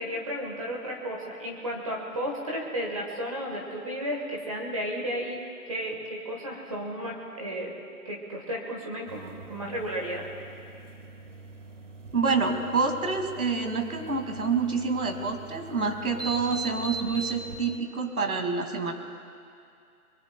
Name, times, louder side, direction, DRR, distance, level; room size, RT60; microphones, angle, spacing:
voice 1, 0.0-5.4 5.7-7.7 8.0-10.3, equal, 25° right, -2 dB, 1.4 m, -33 dB
sound 1, 9.1-17.8, right 3 dB, 55° right, 1.0 m, -41 dB
voice 2, 12.1-18.9, right 4 dB, 70° right, 4 dB, 2.3 m, -27 dB
23.0 x 23.0 x 2.3 m, 2.4 s
figure-of-eight pair, 170°, 45 cm